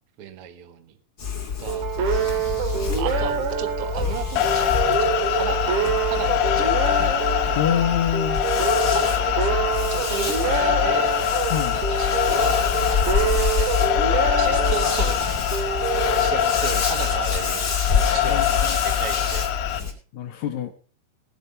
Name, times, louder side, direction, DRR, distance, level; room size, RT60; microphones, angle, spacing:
voice 1, 0.2-0.9 1.6-1.9 2.9-5.8 6.1-7.2 8.8-11.2 11.7-14.0 14.2-15.5 16.2-19.9, right 8 dB, 85° right, 11 dB, 1.2 m, -35 dB
sound 1, 1.2-19.9, left 6 dB, 30° left, 3.1 m, -27 dB
sound 2, 1.7-17.0, right 8 dB, 55° right, 2.9 m, -27 dB
sound 3, 4.4-19.8, left 12 dB, 80° left, 3.0 m, -24 dB
voice 2, 7.6-8.4 11.5-11.8 18.2-18.8 20.1-20.7, left 10 dB, 65° left, 7 dB, 2.0 m, -26 dB
19.0 x 7.6 x 5.3 m, 0.38 s
omnidirectional pair, 4.5 m